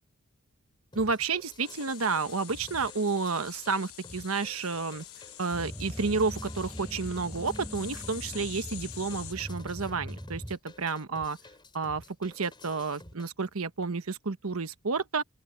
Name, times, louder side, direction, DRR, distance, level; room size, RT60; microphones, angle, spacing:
sound 1, 0.9-13.3, left 2 dB, 20° left, 3.9 m, -51 dB
voice 1, 0.9-5.0 5.4-11.4 11.7-15.2, right 4 dB, 70° right, 1.2 m, -31 dB
sound 2, 1.6-9.3, left 13 dB, 70° left, 1.3 m, -47 dB
sound 3, 5.5-10.6, equal, ahead, 3.7 m, -41 dB
open air
head